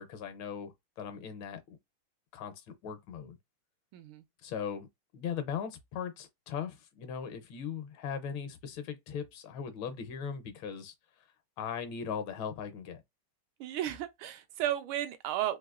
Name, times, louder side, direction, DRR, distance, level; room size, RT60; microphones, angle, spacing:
voice 1, 0.0-1.6 2.3-3.4 4.4-4.9 5.1-10.9 11.6-13.0, left 7 dB, 75° left, 1.4 m, -39 dB
voice 2, 3.9-4.2 13.6-15.6, right 12 dB, 85° right, 1.4 m, -34 dB
3.9 x 2.7 x 2.4 m
omnidirectional pair, 2.3 m